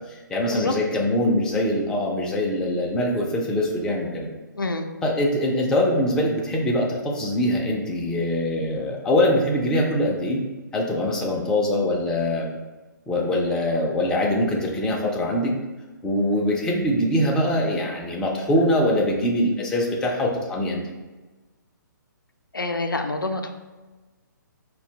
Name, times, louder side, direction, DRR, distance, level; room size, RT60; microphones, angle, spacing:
voice 1, 0.3-4.3 5.0-10.4 10.7-12.5 13.1-15.5 16.0-20.8, left 1 dB, 5° left, -2 dB, 0.3 m, -23 dB
voice 2, 4.6-4.9 22.5-23.5, left 2 dB, 85° left, 5 dB, 0.4 m, -26 dB
4.0 x 2.2 x 2.7 m, 1.2 s
figure-of-eight pair, 130°, 11 cm